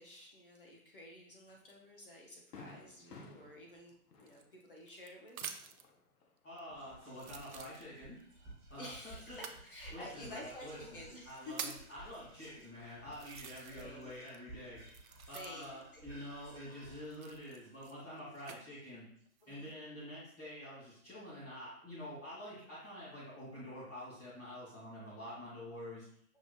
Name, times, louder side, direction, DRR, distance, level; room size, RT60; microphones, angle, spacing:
voice 1, 0.0-5.4 8.7-11.7 13.7-14.1 15.3-16.2 19.4-19.7, left 1 dB, 35° left, -1 dB, 0.6 m, -51 dB
Fireworks, 1.5-1.6 2.0-2.1 2.5-6.3 6.6-7.5, left 3 dB, 90° left, 0.9 m, -56 dB
sound 1, 4.2-5.9 6.6-6.7 7.2-8.2 9.3-9.6 10.5-10.6 11.1-11.9 12.6-12.7 13.1-14.0 14.3-15.8 17.0-18.6 19.3-19.7, right 7 dB, 65° right, 0.5 m, -47 dB
voice 2, 6.4-8.2 8.7-9.4 9.9-14.9 15.3-19.1 19.5-26.1, equal, 10° left, -12 dB, 0.8 m, -48 dB
Whispering, 6.7-19.2, right 2 dB, 10° right, 1.1 m, -56 dB
6.2 x 2.8 x 2.2 m, 0.67 s
hypercardioid pair, 155°, 46 cm